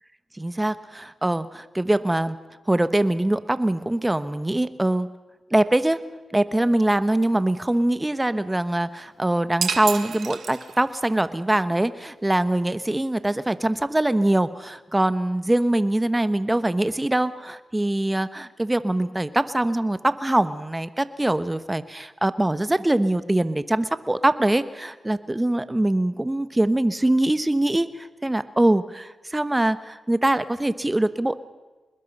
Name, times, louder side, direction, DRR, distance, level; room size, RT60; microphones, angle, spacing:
voice 1, 0.4-2.4 2.7-5.1 5.5-6.0 6.3-31.4, right 1 dB, 20° right, 13 dB, 1.2 m, -23 dB
sound 1, 9.6-11.1, right 6 dB, 75° right, 1.2 m, -30 dB
25.5 x 21.0 x 5.5 m, 1.2 s
supercardioid pair, 45°, 0 cm